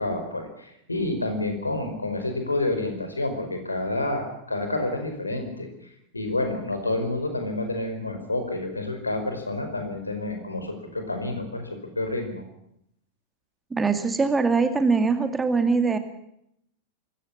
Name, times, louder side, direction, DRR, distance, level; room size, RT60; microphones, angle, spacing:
voice 1, 0.0-5.7 6.1-11.7 11.9-12.4, left 2 dB, 80° left, 6 dB, 4.9 m, -29 dB
voice 2, 13.7-16.0, right 4 dB, 15° right, 8 dB, 2.4 m, -22 dB
25.0 x 15.0 x 9.9 m, 0.75 s
figure-of-eight pair, 90°, 0 cm